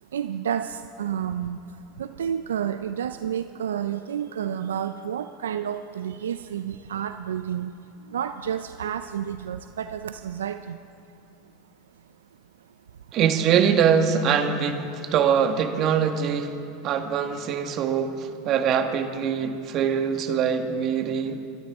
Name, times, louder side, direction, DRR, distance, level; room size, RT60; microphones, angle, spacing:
voice 1, 0.0-7.7 8.0-10.8, right 9 dB, 90° right, 10 dB, 0.4 m, -30 dB
voice 2, 13.1-16.6 16.8-21.4, right 7 dB, 50° right, 6 dB, 1.5 m, -23 dB
24.0 x 12.5 x 3.6 m, 2.6 s
hypercardioid pair, 95°, 0 cm